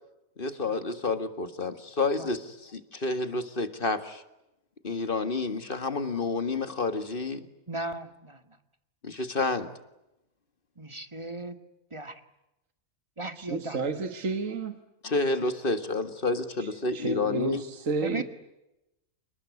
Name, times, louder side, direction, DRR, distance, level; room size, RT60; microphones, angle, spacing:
voice 1, 0.4-4.2 4.8-7.4 9.0-9.7 15.0-17.6, left 3 dB, 40° left, 10 dB, 2.0 m, -29 dB
voice 2, 7.7-8.4 10.8-11.6 11.9-12.2 13.2-13.8 18.0-18.2, right 2 dB, 20° right, 9 dB, 1.8 m, -36 dB
voice 3, 13.4-14.8 16.6-18.2, right 3 dB, 70° right, 8 dB, 2.0 m, -31 dB
29.5 x 20.0 x 9.6 m, 0.92 s
omnidirectional pair, 1.4 m